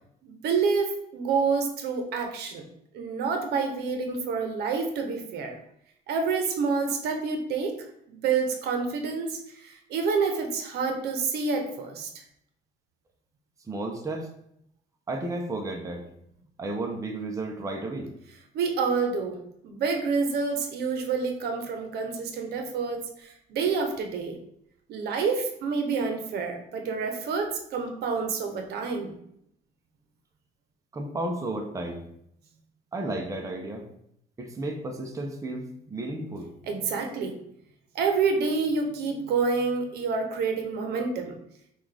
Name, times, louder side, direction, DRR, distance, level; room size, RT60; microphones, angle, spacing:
voice 1, 0.2-2.6 2.9-5.6 6.1-12.2 18.5-24.4 24.9-29.1 36.6-37.3 37.9-41.4, right 5 dB, 70° right, 4 dB, 0.9 m, -28 dB
voice 2, 13.7-14.3 15.1-16.1 16.6-18.1 30.9-32.0 32.9-33.9 34.4-36.5, right 2 dB, 20° right, 2 dB, 0.7 m, -33 dB
5.9 x 2.5 x 3.4 m, 0.72 s
cardioid pair, 110°, 17 cm